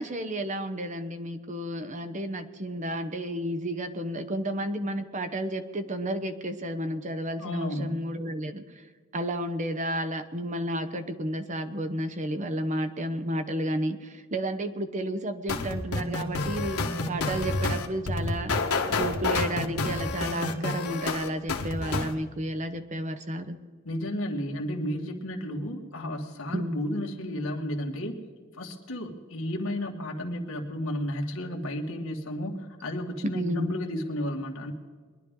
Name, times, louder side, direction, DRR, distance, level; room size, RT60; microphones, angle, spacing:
voice 1, 0.0-8.9 9.1-16.8 17.1-18.5 18.9-23.6 26.5-26.8 33.3-33.8, right 1 dB, 35° right, 8 dB, 0.8 m, -32 dB
voice 2, 7.4-8.0 23.9-28.2 28.6-34.7, equal, 65° left, 2 dB, 1.9 m, -33 dB
sound 1, 15.5-22.1, left 3 dB, 80° left, 1.4 m, -29 dB
22.0 x 11.0 x 3.7 m, 1.5 s
head